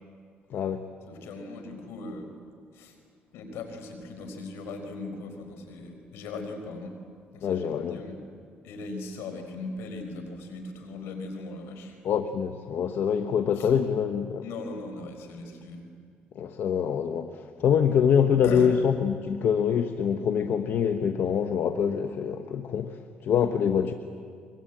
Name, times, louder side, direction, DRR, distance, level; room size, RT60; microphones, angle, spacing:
voice 1, 0.5-0.9 7.4-8.0 12.0-14.4 16.3-23.9, left 7 dB, 70° left, 8 dB, 1.2 m, -25 dB
voice 2, 1.1-2.3 2.7-3.0 3.3-6.9 7.3-8.2 8.6-12.0 13.6-13.7 14.4-15.8 18.4-18.7, left 3 dB, 85° left, 6 dB, 4.4 m, -38 dB
24.0 x 22.5 x 9.1 m, 2.2 s
cardioid pair, 80°, 4 cm